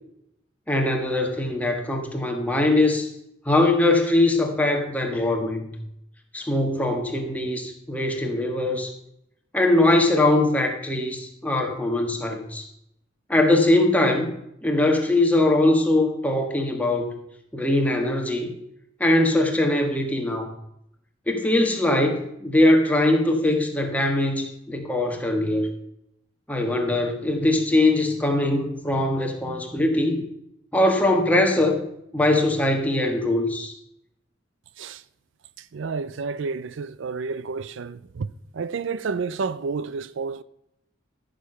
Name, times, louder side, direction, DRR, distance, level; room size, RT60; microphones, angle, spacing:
voice 1, 0.7-3.1 3.4-5.7 6.3-8.9 9.5-12.6 13.3-14.3 14.6-17.1 17.5-18.5 19.0-20.5 21.3-25.7 26.5-30.2 30.7-31.8 32.1-33.7, left 1 dB, 10° left, 1.6 m, -21 dB
voice 2, 35.6-40.4, right 4 dB, 70° right, 0.5 m, -30 dB
14.0 x 6.7 x 5.6 m
head